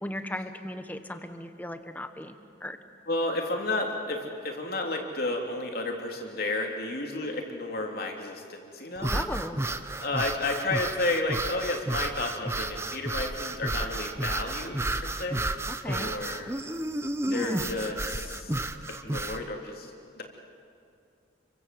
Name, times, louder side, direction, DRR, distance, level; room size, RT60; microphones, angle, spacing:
voice 1, 0.0-2.8 9.1-9.6 15.7-16.1 17.3-17.7, left 1 dB, 10° left, 8 dB, 1.3 m, -37 dB
voice 2, 3.1-9.3 10.0-15.5 15.8-16.6 17.3-18.5 18.9-20.2, left 2 dB, 50° left, 2 dB, 3.3 m, -32 dB
sound 1, 9.0-19.4, right 2 dB, 15° right, 0.8 m, -32 dB
29.5 x 24.0 x 7.8 m, 2.5 s
head